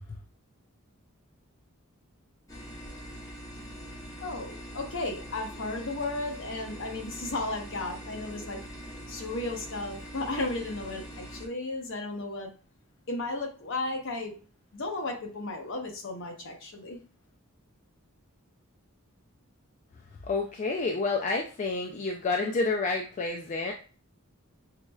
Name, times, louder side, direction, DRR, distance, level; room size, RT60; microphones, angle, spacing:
sound 1, 2.5-11.5, equal, 15° left, 0.8 m, -43 dB
voice 1, 4.2-8.6 9.1-12.5 13.1-14.4 14.7-17.0, left 2 dB, 60° left, 2 dB, 0.8 m, -34 dB
voice 2, 20.3-23.7, left 3 dB, 35° left, 2 dB, 0.3 m, -29 dB
5.7 x 2.1 x 2.3 m, 0.38 s
head